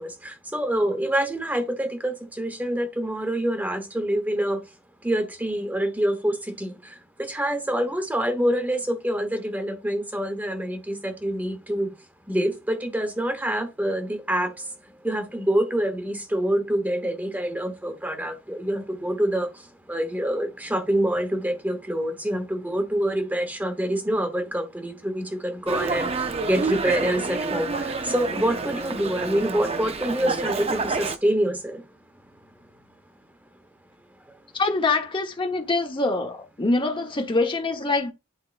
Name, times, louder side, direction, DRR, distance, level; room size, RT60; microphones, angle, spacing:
voice 1, 0.0-4.6 5.0-6.7 7.2-11.9 12.3-14.5 15.0-19.5 19.9-26.1 26.5-31.8, right 1 dB, 10° right, 1.1 m, -26 dB
Dog, 25.7-31.2, right 3 dB, 30° right, 0.6 m, -28 dB
voice 2, 34.5-38.1, left 3 dB, 25° left, 1.1 m, -24 dB
10.5 x 4.6 x 2.5 m
head